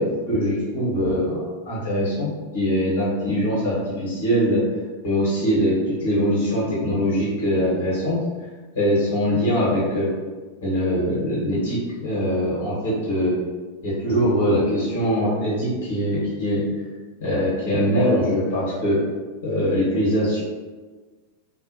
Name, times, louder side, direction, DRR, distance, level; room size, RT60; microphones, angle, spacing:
voice 1, 0.0-4.6 5.0-8.2 8.7-10.1 10.6-13.3 13.8-16.7 17.2-19.0 19.4-20.4, equal, 60° left, -7 dB, 1.1 m, -22 dB
2.4 x 2.1 x 2.7 m, 1.3 s
figure-of-eight pair, 90°, 0 cm